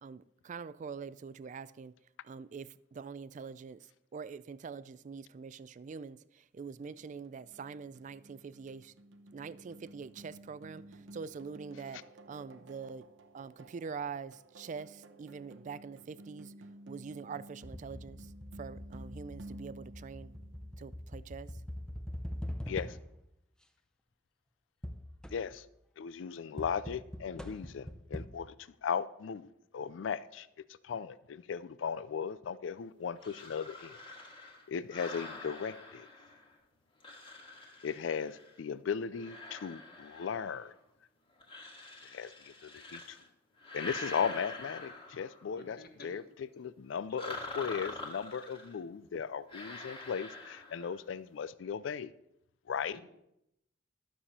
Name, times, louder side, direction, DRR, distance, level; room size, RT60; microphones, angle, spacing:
voice 1, 0.0-1.9 2.3-3.8 4.1-6.2 6.5-8.9 9.3-10.8 11.1-12.0 12.3-13.1 13.3-16.5 16.9-18.2 18.6-20.3 20.8-21.5, right 5 dB, 40° right, 0.3 m, -44 dB
sound 1, 6.8-21.0, right 1 dB, 85° right, 0.8 m, -54 dB
sound 2, 17.6-23.3 24.8-25.7 26.6-28.3, equal, 5° left, 0.6 m, -43 dB
voice 2, 22.7-23.0 25.3-25.7 26.0-28.5 28.8-30.5 30.8-34.0 34.7-36.1 37.8-40.7 42.1-43.2 43.7-52.1 52.7-53.0, left 6 dB, 85° left, 0.4 m, -37 dB
sound 3, 33.2-36.6 37.0-38.6 39.1-40.8 41.4-43.3 43.6-45.5 47.2-48.8 49.5-51.0, left 2 dB, 30° left, 2.0 m, -46 dB
voice 3, 45.5-46.2 47.1-47.2 52.9-53.0, left 2 dB, 55° left, 1.5 m, -51 dB
12.5 x 7.0 x 4.2 m
head